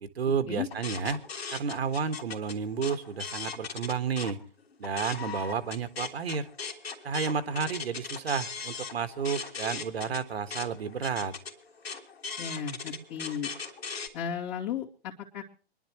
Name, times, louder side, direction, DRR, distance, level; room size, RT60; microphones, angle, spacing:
voice 1, 0.0-1.2 1.5-4.4 4.8-6.5 7.0-11.3, right 6 dB, 75° right, 10 dB, 1.5 m, -31 dB
sound 1, 0.7-4.3 4.7-14.1, left 5 dB, 75° left, 3.0 m, -39 dB
voice 2, 12.4-13.5 14.1-15.4, left 8 dB, 40° left, -6 dB, 2.5 m, -35 dB
26.5 x 11.5 x 3.1 m, 0.39 s
hypercardioid pair, 135°, 31 cm